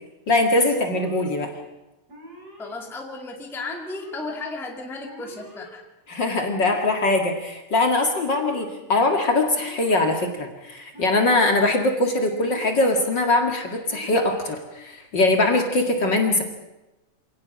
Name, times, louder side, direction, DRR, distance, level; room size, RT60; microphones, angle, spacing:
voice 1, 0.3-1.5 6.1-16.4, left 2 dB, 40° left, 3 dB, 2.5 m, -22 dB
Alarm, 0.6-1.3 2.1-2.7 3.6-4.2 5.0-5.7 6.5-7.2 8.0-8.6 9.5-10.1 10.9-11.6 12.4-13.1 13.9-14.5, left 1 dB, 30° right, 6.2 m, -43 dB
voice 2, 2.6-5.8, left 3 dB, ahead, 2 dB, 1.9 m, -34 dB
26.0 x 18.0 x 6.3 m, 0.98 s
omnidirectional pair, 3.3 m